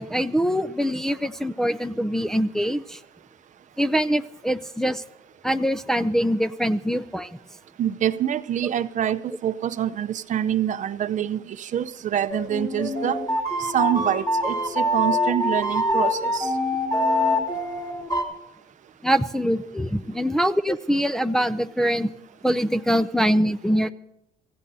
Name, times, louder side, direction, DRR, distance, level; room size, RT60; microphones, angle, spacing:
voice 1, 0.0-3.0 3.8-5.0 5.4-7.3 19.0-22.1 22.4-23.9, equal, 5° left, 0.5 m, -23 dB
voice 2, 7.8-13.2 13.6-16.5, right 10 dB, 50° right, 0.7 m, -26 dB
sound 1, 12.3-18.2, left 1 dB, 25° left, 3.0 m, -24 dB
27.5 x 16.0 x 2.7 m
cardioid pair, 110°, 17 cm